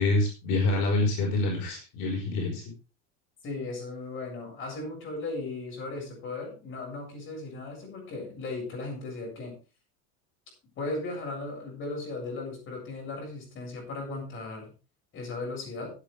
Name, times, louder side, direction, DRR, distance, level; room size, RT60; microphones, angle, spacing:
voice 1, 0.0-2.6, left 2 dB, 65° left, 0 dB, 5.1 m, -26 dB
voice 2, 3.4-9.6 10.8-14.7 15.1-15.9, left 2 dB, 35° left, 0 dB, 7.9 m, -36 dB
17.0 x 9.3 x 3.5 m, 0.33 s
cardioid pair, 160°, 35 cm